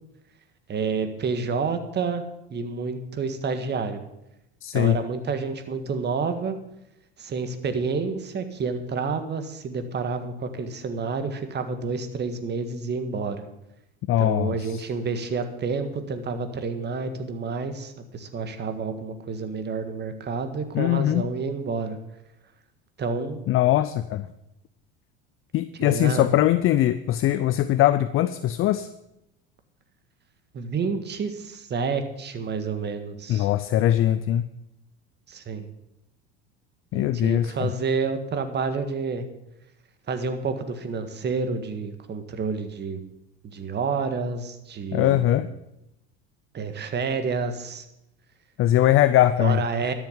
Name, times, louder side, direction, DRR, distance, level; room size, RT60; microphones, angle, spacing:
voice 1, 0.7-2.2 2.5-4.0 4.7-6.6 7.2-13.4 14.2-22.0 23.0-23.4 25.8-26.3 30.5-33.5 35.3-35.7 36.9-39.3 40.1-43.0 43.4-45.5 46.5-47.8 49.4-49.9, right 4 dB, 35° right, 9 dB, 1.8 m, -29 dB
voice 2, 4.6-5.0 14.1-14.8 20.7-21.2 23.5-24.3 25.5-28.9 33.3-34.5 36.9-37.7 44.9-45.5 48.6-49.9, left 13 dB, 45° left, 13 dB, 0.6 m, -21 dB
12.5 x 7.3 x 8.1 m, 0.86 s
supercardioid pair, 95°, 30 cm